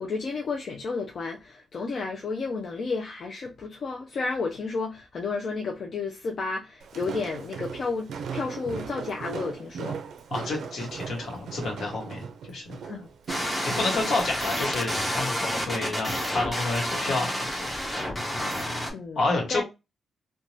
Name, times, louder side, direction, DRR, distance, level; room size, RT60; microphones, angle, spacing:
voice 1, 0.0-10.0 12.8-13.1 13.7-14.0 18.9-19.2 19.5-19.6, left 4 dB, 50° left, 0.3 m, -32 dB
Walk footsteps, 6.8-14.0, right 6 dB, 85° right, 0.4 m, -38 dB
voice 2, 10.3-12.6 13.6-17.7 19.2-19.6, left 3 dB, 70° left, 1.0 m, -29 dB
sound 1, 13.3-18.9, equal, 10° left, 0.7 m, -29 dB
2.6 x 2.2 x 3.0 m
wide cardioid pair, 155°, 0 cm